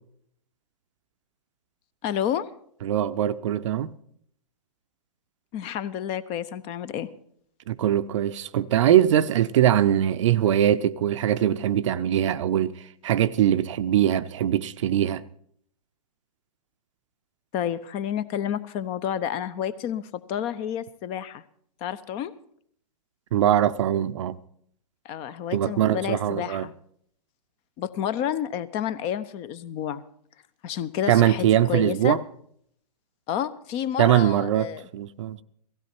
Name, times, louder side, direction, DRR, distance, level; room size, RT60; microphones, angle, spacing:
voice 1, 2.0-2.5 5.5-7.1 17.5-21.4 21.8-22.3 25.0-26.7 27.8-30.0 30.6-32.2 33.3-34.9, left 9 dB, 30° left, 0.8 m, -30 dB
voice 2, 2.8-3.9 7.7-15.2 23.3-24.4 25.5-26.7 31.1-32.2 34.0-35.4, right 11 dB, 50° right, 0.7 m, -22 dB
17.0 x 15.5 x 4.5 m
figure-of-eight pair, 115°, 21 cm